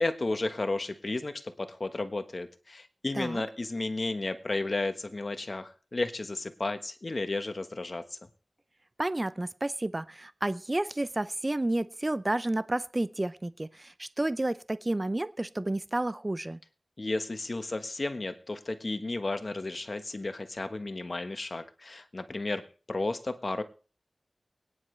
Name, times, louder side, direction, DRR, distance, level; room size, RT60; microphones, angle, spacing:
voice 1, 0.0-8.2 17.0-23.6, left 2 dB, 55° left, 9 dB, 1.3 m, -33 dB
voice 2, 9.0-16.6, right 1 dB, 30° right, 15 dB, 0.6 m, -31 dB
22.5 x 9.9 x 3.3 m, 0.38 s
wide cardioid pair, 55°, 0 cm